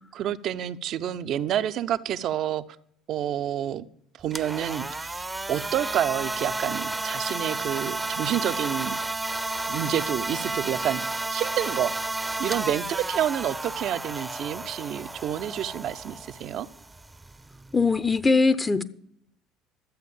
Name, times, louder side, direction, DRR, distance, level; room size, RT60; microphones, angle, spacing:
voice 1, 0.1-2.6 3.1-3.8 4.2-9.0 9.7-16.7, right 11 dB, 55° right, 0.6 m, -29 dB
sound 1, 4.2-18.3, right 2 dB, 15° right, 0.7 m, -32 dB
voice 2, 17.7-18.8, left 4 dB, 20° left, 0.8 m, -21 dB
12.5 x 7.8 x 7.0 m
hypercardioid pair, 60°, 0 cm